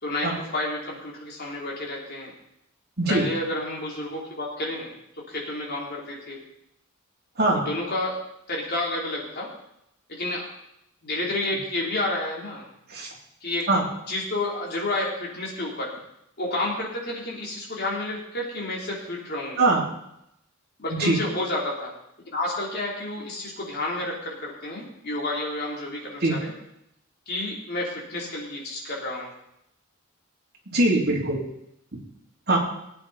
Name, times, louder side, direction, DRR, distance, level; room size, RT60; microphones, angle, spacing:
voice 1, 0.0-2.3 3.1-4.9 5.3-6.4 7.5-8.2 8.5-9.5 10.1-10.5 11.0-12.7 13.4-13.7 14.1-15.9 16.4-19.7 20.8-21.9 22.3-26.5 27.3-29.3, left 2 dB, 50° left, -3 dB, 3.6 m, -30 dB
voice 2, 30.7-31.4 32.5-32.6, right 2 dB, 50° right, -3 dB, 3.2 m, -21 dB
18.5 x 8.9 x 4.2 m, 0.80 s
head